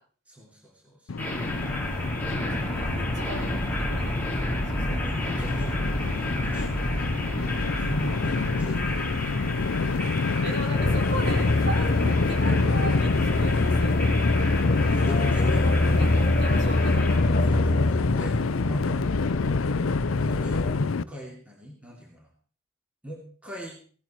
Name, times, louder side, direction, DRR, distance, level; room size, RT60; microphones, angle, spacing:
voice 1, 0.3-1.1 1.8-2.0 4.8-6.8 7.7-9.2 14.9-16.0 17.2-19.1 20.3-22.3 23.0-23.8, equal, 5° right, -1 dB, 2.9 m, -39 dB
Train, 1.1-21.0, left 4 dB, 90° left, 0.6 m, -28 dB
sound 1, 1.2-17.2, left 1 dB, 10° left, 3.6 m, -31 dB
voice 2, 1.9-5.1 8.3-8.4 8.8-9.8 10.0-14.3 15.6-17.6, right 1 dB, 55° right, 0 dB, 5.0 m, -39 dB
sound 2, 10.8-20.7, left 2 dB, 45° left, 0.9 m, -25 dB
16.5 x 13.0 x 4.5 m, 0.42 s
head